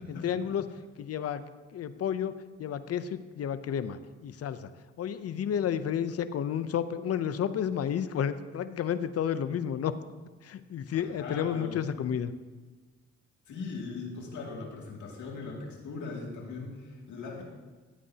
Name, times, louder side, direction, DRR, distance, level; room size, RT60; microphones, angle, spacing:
voice 1, 0.1-0.6 1.0-1.4 1.7-4.7 5.0-10.0 10.4-12.3, left 9 dB, 55° left, 13 dB, 0.7 m, -31 dB
voice 2, 10.9-11.8 13.5-17.4, left 4 dB, 75° left, -1 dB, 2.5 m, -39 dB
15.0 x 8.5 x 2.8 m, 1.3 s
cardioid pair, 90°, 30 cm